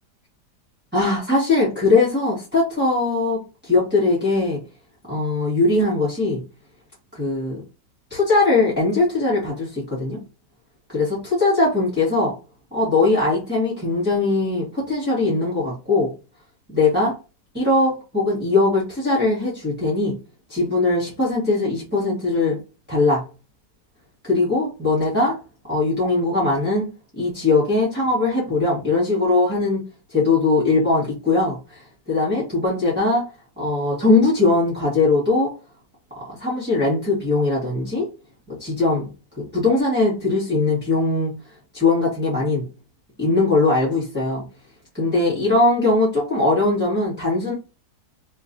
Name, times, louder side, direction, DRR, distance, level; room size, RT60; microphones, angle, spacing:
voice 1, 0.9-4.6 5.1-6.4 7.1-7.6 8.1-10.2 10.9-12.3 12.7-16.1 16.7-17.2 17.5-20.2 20.5-22.6 22.9-23.2 24.2-25.4 25.7-26.9 27.1-29.8 30.1-31.8 32.1-33.3 33.6-35.5 36.1-38.1 38.5-39.1 39.4-41.3 41.7-42.7 43.2-44.5 44.9-47.5, left 3 dB, 5° right, 1.5 m, -20 dB
3.2 x 2.9 x 2.6 m
omnidirectional pair, 1.9 m